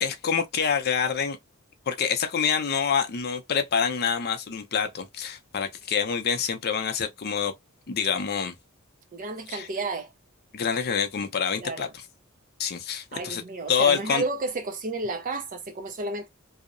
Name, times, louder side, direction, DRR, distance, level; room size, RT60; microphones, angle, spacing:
voice 1, 0.0-1.4 1.9-7.5 7.9-8.5 9.5-9.7 10.5-11.9 12.6-13.4 13.7-14.2, left 7 dB, 45° left, 0.5 m, -26 dB
voice 2, 9.1-10.1 11.6-11.9 13.1-16.3, right 3 dB, 40° right, 0.4 m, -32 dB
2.7 x 2.0 x 2.4 m
head